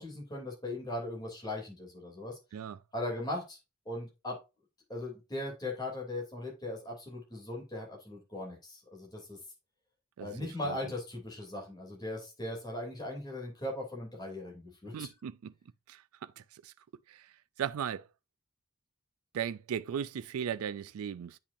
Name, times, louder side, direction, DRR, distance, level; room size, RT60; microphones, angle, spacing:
voice 1, 0.0-2.4 2.9-3.6 3.8-4.4 4.9-9.4 10.2-15.1, left 1 dB, 20° left, 3.0 m, -39 dB
voice 2, 10.2-10.8 14.9-15.5 15.9-16.7 17.1-18.1 19.3-21.4, right 8 dB, 85° right, 0.4 m, -38 dB
8.5 x 5.5 x 2.6 m
head